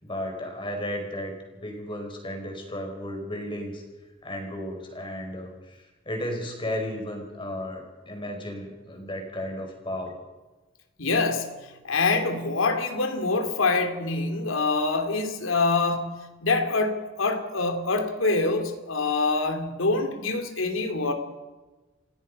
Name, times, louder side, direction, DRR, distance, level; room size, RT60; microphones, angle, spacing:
voice 1, 0.1-1.4 1.6-3.8 4.2-10.2, left 1 dB, 25° left, 2 dB, 5.1 m, -34 dB
voice 2, 11.0-21.1, left 3 dB, 85° left, 6 dB, 2.7 m, -25 dB
30.0 x 16.5 x 5.5 m, 1.2 s
head